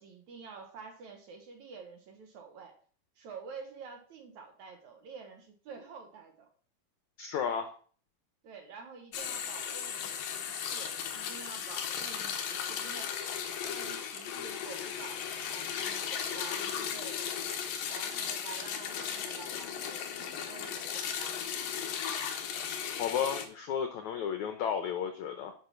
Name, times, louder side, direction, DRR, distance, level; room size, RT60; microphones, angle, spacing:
voice 1, 0.0-2.7 3.2-6.5 8.4-13.2 13.6-17.3 17.9-21.5, right 5 dB, 60° right, 4 dB, 2.2 m, -49 dB
voice 2, 7.2-7.7 23.0-25.5, left 8 dB, 85° left, 7 dB, 1.6 m, -33 dB
sound 1, 9.1-23.4, left 8 dB, 70° left, 2.6 m, -36 dB
10.0 x 5.7 x 5.9 m, 0.43 s
omnidirectional pair, 4.6 m